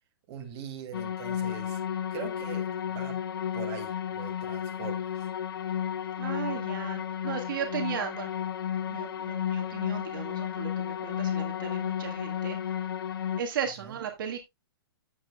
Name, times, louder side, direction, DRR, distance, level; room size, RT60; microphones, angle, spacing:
voice 1, 0.3-1.8 2.1-3.2 3.5-5.3 13.8-14.0, right 7 dB, 25° right, 2.3 m, -42 dB
sound 1, 0.9-13.4, left 9 dB, 60° left, 1.1 m, -32 dB
voice 2, 6.2-8.3 8.9-12.6 13.4-14.4, right 8 dB, 55° right, 1.6 m, -36 dB
12.5 x 7.5 x 2.2 m
hypercardioid pair, 170°, 13 cm